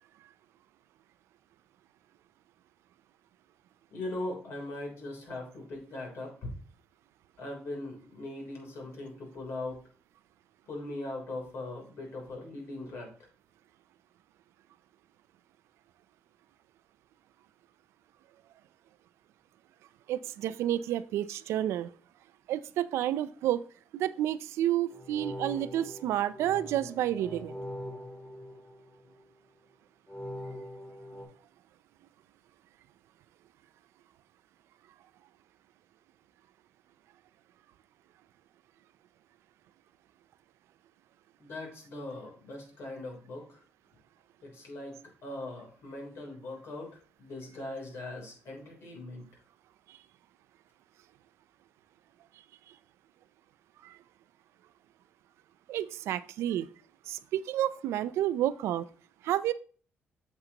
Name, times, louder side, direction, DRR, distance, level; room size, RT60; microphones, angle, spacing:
voice 1, 3.9-6.5 7.4-9.8 10.7-13.1 41.4-43.6 44.4-45.0 45.2-46.9 47.2-49.2, left 2 dB, 65° left, 0 dB, 3.4 m, -40 dB
voice 2, 20.1-21.9 22.5-23.7 23.9-27.6 49.9-50.0 53.8-54.0 55.7-56.7 57.1-58.8 59.2-59.5, right 12 dB, 85° right, 15 dB, 0.4 m, -30 dB
sound 1, 24.9-29.2 30.1-31.3, equal, 30° left, 3.4 m, -42 dB
8.1 x 6.5 x 2.9 m, 0.42 s
cardioid pair, 90°, 4 cm